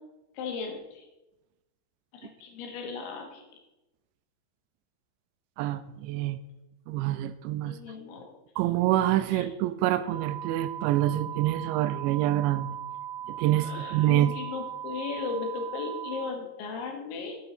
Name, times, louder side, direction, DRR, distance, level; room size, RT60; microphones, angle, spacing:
voice 1, 0.4-1.1 2.1-3.4 7.6-8.3 9.3-9.5 13.6-17.4, left 5 dB, 80° left, 2 dB, 3.8 m, -36 dB
voice 2, 5.6-6.4 6.9-7.7 8.6-12.8 13.3-14.3, right 14 dB, 85° right, 13 dB, 2.8 m, -26 dB
sound 1, 10.1-16.3, right 10 dB, 65° left, 2.7 m, -38 dB
9.4 x 8.1 x 4.3 m, 1.0 s
omnidirectional pair, 5.2 m